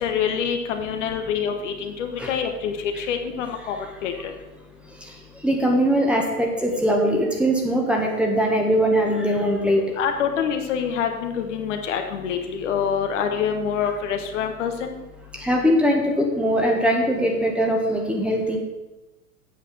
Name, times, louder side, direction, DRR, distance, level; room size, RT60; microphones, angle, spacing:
voice 1, 0.0-3.8 4.0-4.3 10.0-15.0, left 7 dB, 50° left, 5 dB, 1.4 m, -26 dB
voice 2, 5.4-9.8 15.4-18.6, equal, ahead, 0 dB, 1.6 m, -21 dB
8.4 x 6.5 x 7.6 m, 1.1 s
figure-of-eight pair, 105°, 46 cm